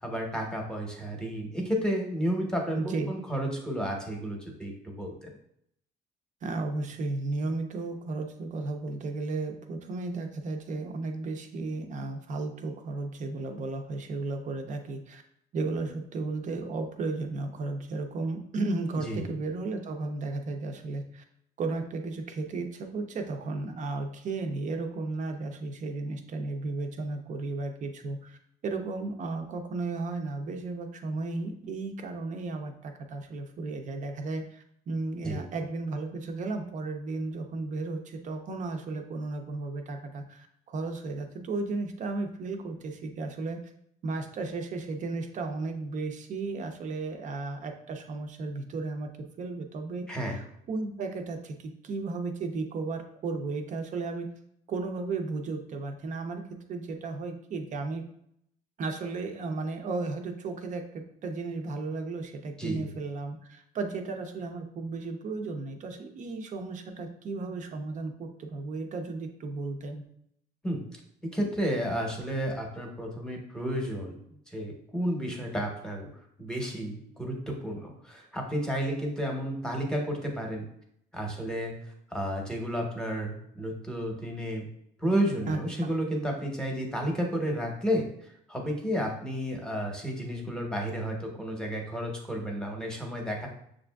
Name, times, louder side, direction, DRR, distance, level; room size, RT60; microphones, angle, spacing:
voice 1, 0.0-5.3 19.0-19.3 35.2-35.4 50.1-50.4 62.6-62.9 70.6-74.2 74.5-76.1 76.4-80.7 81.1-84.6 85.0-93.5, equal, 5° left, 0 dB, 0.9 m, -32 dB
voice 2, 2.7-3.1 6.4-15.2 15.5-21.2 21.6-28.4 28.6-43.6 44.0-49.1 49.4-54.3 54.7-58.0 58.8-70.0 85.4-85.9, right 3 dB, 45° right, 5 dB, 0.6 m, -34 dB
6.6 x 2.5 x 2.3 m, 0.72 s
cardioid pair, 110°, 17 cm